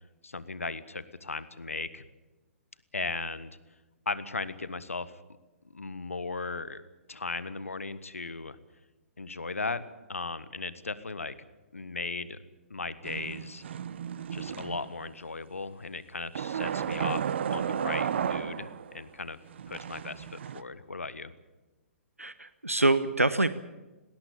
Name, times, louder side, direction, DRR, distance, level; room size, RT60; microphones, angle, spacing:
voice 1, 0.2-2.0 2.9-3.6 4.0-5.1 5.7-6.8 7.1-8.6 9.2-9.8 10.1-11.3 11.7-12.4 12.7-13.6 14.3-19.4 19.7-21.3, left 3 dB, 75° left, 15 dB, 1.4 m, -37 dB
sound 1, 13.0-15.1 16.3-19.0 19.5-20.6, right 8 dB, 55° right, 1.0 m, -33 dB
voice 2, 22.2-23.5, right 2 dB, 90° right, 14 dB, 0.9 m, -25 dB
19.5 x 18.5 x 8.7 m, 1.1 s
figure-of-eight pair, 120°, 7 cm